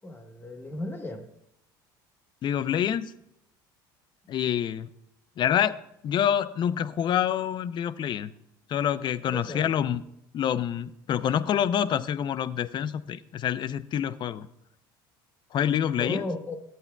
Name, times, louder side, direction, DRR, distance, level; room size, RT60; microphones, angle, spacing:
voice 1, 0.0-1.3 9.3-9.7 16.0-16.6, left 2 dB, 20° left, 5 dB, 1.0 m, -35 dB
voice 2, 2.4-3.1 4.3-4.9 5.4-5.8 6.0-8.3 8.7-10.0 10.3-14.5 15.5-16.3, left 9 dB, 45° left, 15 dB, 0.5 m, -27 dB
13.5 x 8.5 x 2.2 m, 0.78 s
supercardioid pair, 80°, 11 cm